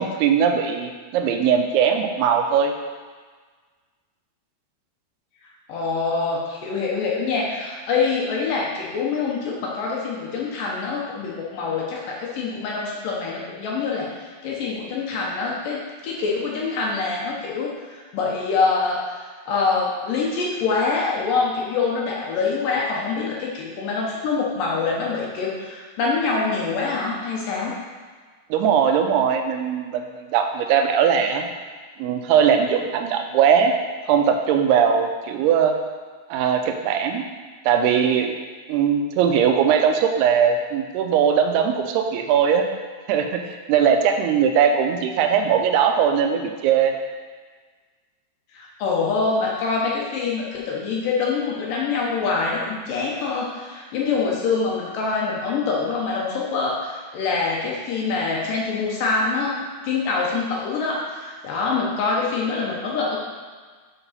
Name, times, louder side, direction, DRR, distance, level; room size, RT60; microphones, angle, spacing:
voice 1, 0.0-2.7 28.5-31.5 32.0-33.7 34.1-35.7 36.3-37.2 37.7-38.3 38.7-42.7 43.1-46.9, right 7 dB, 85° right, 4 dB, 2.7 m, -20 dB
voice 2, 5.7-27.8 48.5-63.2, left 4 dB, 75° left, -3 dB, 2.2 m, -25 dB
7.9 x 6.0 x 4.1 m, 1.5 s
omnidirectional pair, 4.6 m